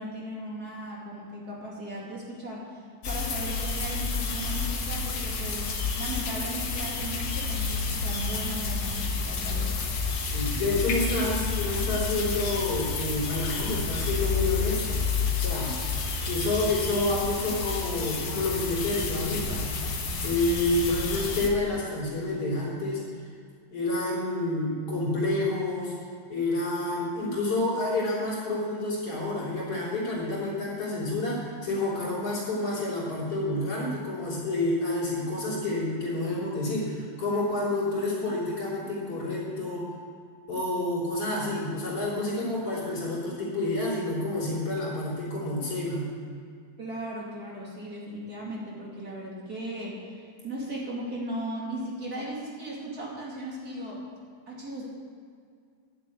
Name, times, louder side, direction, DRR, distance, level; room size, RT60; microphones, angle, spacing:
voice 1, 0.0-5.7 6.0-9.7 46.8-54.0 54.5-54.9, right 1 dB, 30° right, -4 dB, 2.2 m, -37 dB
sound 1, 3.0-21.5, left 4 dB, 70° left, 1.3 m, -30 dB
voice 2, 10.3-15.0 15.4-15.8 16.3-19.7 20.2-23.0 23.7-25.9 26.3-39.9 40.5-46.1, left 2 dB, 35° left, -6 dB, 4.0 m, -29 dB
11.5 x 7.6 x 8.4 m, 2.2 s
omnidirectional pair, 4.5 m